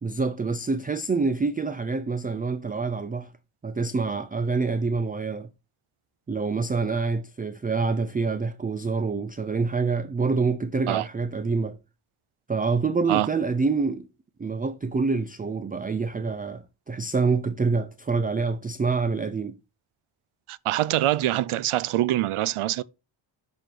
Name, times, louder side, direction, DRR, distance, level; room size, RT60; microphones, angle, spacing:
voice 1, 0.0-3.3 3.6-5.5 6.3-11.8 12.5-14.1 14.4-19.5, right 4 dB, 20° right, 0.3 m, -26 dB
voice 2, 20.5-22.8, right 14 dB, 80° right, 0.6 m, -24 dB
6.6 x 4.4 x 4.5 m
wide cardioid pair, 110°, 50 cm